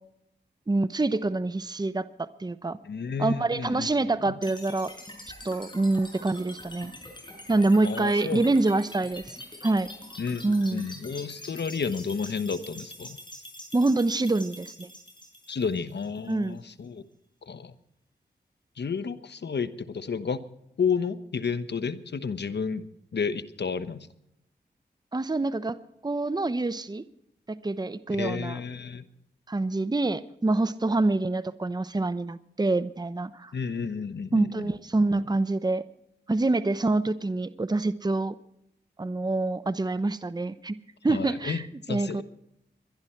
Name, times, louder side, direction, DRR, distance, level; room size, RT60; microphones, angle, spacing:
voice 1, 0.7-2.8 3.2-4.9 5.4-6.9 7.5-9.2 9.6-9.9 10.4-10.9 13.7-14.9 16.3-16.6 25.1-25.8 26.0-27.0 27.5-28.6 29.5-33.5 34.3-35.8 36.3-38.4 39.0-40.8 41.0-42.2, right 2 dB, 20° right, 14 dB, 0.8 m, -26 dB
voice 2, 2.8-4.3 7.8-8.5 10.2-13.2 15.5-17.0 17.5-17.7 18.8-20.4 20.8-22.8 23.1-24.1 28.2-29.0 33.5-34.7 41.1-42.2, left 5 dB, 70° left, 13 dB, 1.0 m, -31 dB
sound 1, 4.4-16.4, left 1 dB, 25° left, 6.4 m, -45 dB
22.5 x 11.5 x 4.5 m, 0.79 s
cardioid pair, 45°, 18 cm